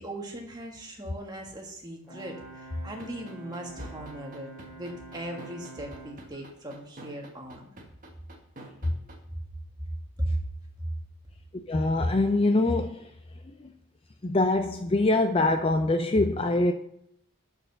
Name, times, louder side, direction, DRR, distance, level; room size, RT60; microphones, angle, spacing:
voice 1, 0.0-7.7 10.2-10.3, right 1 dB, 20° right, 0 dB, 1.6 m, -38 dB
Brass instrument, 2.0-6.3, right 3 dB, ahead, 2.6 m, -47 dB
sound 1, 3.0-9.1, right 2 dB, 40° right, 1.4 m, -46 dB
voice 2, 11.7-13.1 13.6-13.7 14.2-16.7, left 2 dB, 25° left, 7 dB, 0.4 m, -24 dB
6.7 x 6.2 x 6.5 m, 0.75 s
head